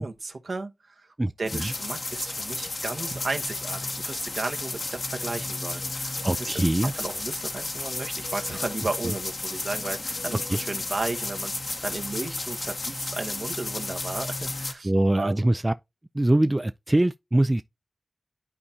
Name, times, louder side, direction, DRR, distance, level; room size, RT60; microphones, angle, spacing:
voice 1, 0.0-15.5, right 3 dB, 70° right, 1.0 m, -34 dB
voice 2, 1.2-1.7 6.2-6.9 9.0-9.1 10.5-10.6 14.8-15.7 16.1-17.6, right 1 dB, 25° right, 0.3 m, -23 dB
sound 1, 1.5-14.7, left 2 dB, 60° left, 1.0 m, -33 dB
11.0 x 4.3 x 2.7 m
cardioid pair, 45°, 0 cm